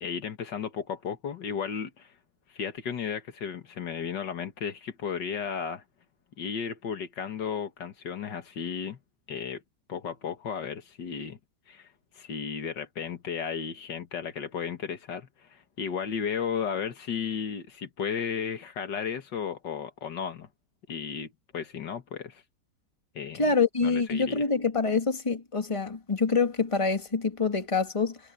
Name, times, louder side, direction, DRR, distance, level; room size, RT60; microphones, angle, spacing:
voice 1, 0.0-2.1 2.5-5.8 6.4-9.0 9.3-9.6 9.9-11.4 11.7-11.9 12.2-20.5 20.9-22.4 23.1-23.5 23.8-24.5, left 7 dB, 90° left, 2.3 m, -34 dB
voice 2, 23.4-28.2, left 4 dB, 20° left, 2.0 m, -26 dB
omnidirectional pair, 1.8 m